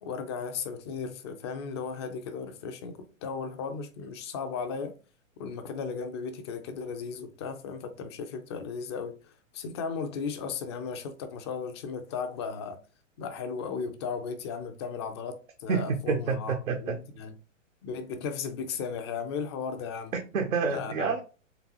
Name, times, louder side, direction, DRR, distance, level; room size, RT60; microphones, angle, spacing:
voice 1, 0.0-4.9 5.4-12.8 13.2-17.3 17.8-20.1 20.7-21.1, left 5 dB, 25° left, 0.3 m, -36 dB
voice 2, 15.7-17.0 20.1-21.2, right 5 dB, 85° right, 0.7 m, -28 dB
3.9 x 3.4 x 2.8 m
figure-of-eight pair, 110°, 39 cm